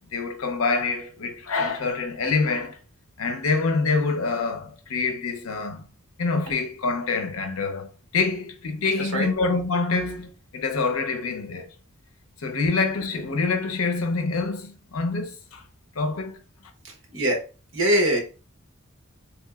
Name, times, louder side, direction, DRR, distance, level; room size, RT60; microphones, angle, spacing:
voice 1, 0.1-2.8 3.2-5.9 6.2-11.7 12.4-15.6 16.0-16.4, left 4 dB, 75° left, 0.6 m, -26 dB
voice 2, 8.9-9.3 16.8-17.4 17.7-18.2, equal, 60° right, 1.0 m, -23 dB
3.5 x 2.9 x 2.3 m
head